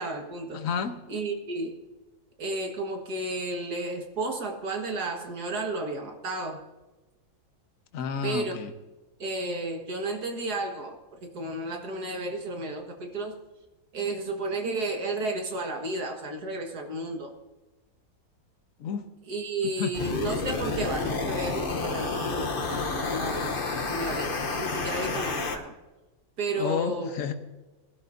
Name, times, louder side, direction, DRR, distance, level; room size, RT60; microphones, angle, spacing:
voice 1, 0.0-0.6 1.1-1.8 2.4-6.6 8.2-8.6 9.2-13.4 13.9-17.3 19.3-25.7 26.4-27.1, right 2 dB, 70° right, 3 dB, 2.2 m, -32 dB
voice 2, 0.5-1.0 7.9-8.7 18.8-19.1 19.8-19.9 26.6-27.3, left 6 dB, 60° left, 8 dB, 1.3 m, -30 dB
sound 1, 19.9-25.6, left 3 dB, 40° left, 1.0 m, -30 dB
20.5 x 12.0 x 2.7 m, 1.2 s
omnidirectional pair, 1.7 m